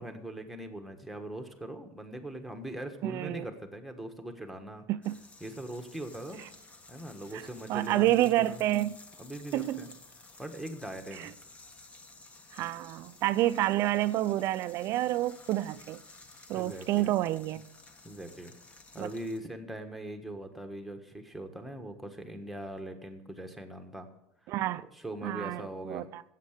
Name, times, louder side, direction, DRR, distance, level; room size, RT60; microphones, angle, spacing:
voice 1, 0.0-4.8 5.4-6.4 6.9-8.6 9.2-9.9 10.4-11.3 16.5-17.1 18.0-18.5 18.9-24.1 24.5-24.6 24.9-26.1, right 1 dB, ahead, 1.5 m, -41 dB
voice 2, 3.0-3.5 4.9-5.2 7.7-9.0 9.5-9.8 11.2-11.3 12.5-16.0 16.5-17.7 19.0-19.1 24.5-24.8 25.2-26.2, right 15 dB, 50° right, 0.5 m, -29 dB
sound 1, 5.0-19.4, left 3 dB, 20° left, 1.3 m, -54 dB
15.0 x 8.3 x 6.6 m
cardioid pair, 140°, 6 cm